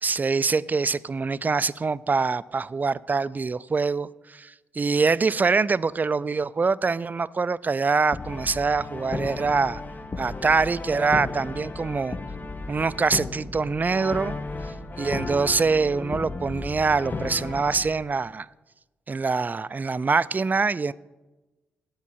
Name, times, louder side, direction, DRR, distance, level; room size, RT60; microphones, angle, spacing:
voice 1, 0.0-9.8 10.2-12.2 12.7-14.4 15.0-18.5 19.1-20.9, right 4 dB, 30° right, 18 dB, 0.3 m, -24 dB
Brass instrument, 8.1-17.9, left 3 dB, 35° left, 0.8 m, -34 dB
8.4 x 5.9 x 7.0 m, 1.1 s
hypercardioid pair, 40°, 6 cm